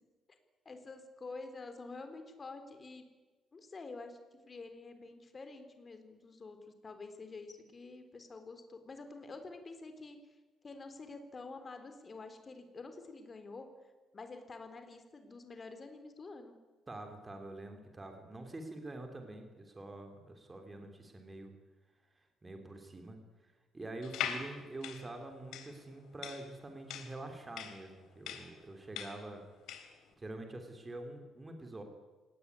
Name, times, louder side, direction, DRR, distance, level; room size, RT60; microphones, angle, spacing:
voice 1, 0.7-3.0 3.5-6.6 6.8-10.2 10.6-13.7 14.1-16.6, left 3 dB, 25° left, 7 dB, 3.8 m, -48 dB
voice 2, 16.9-21.5 22.4-23.2 23.7-29.4 30.2-31.8, right 2 dB, 15° right, 4 dB, 3.5 m, -46 dB
sound 1, 24.0-30.0, left 9 dB, 90° left, 3.4 m, -42 dB
27.5 x 18.5 x 9.7 m, 1.3 s
cardioid pair, 140°, 0 cm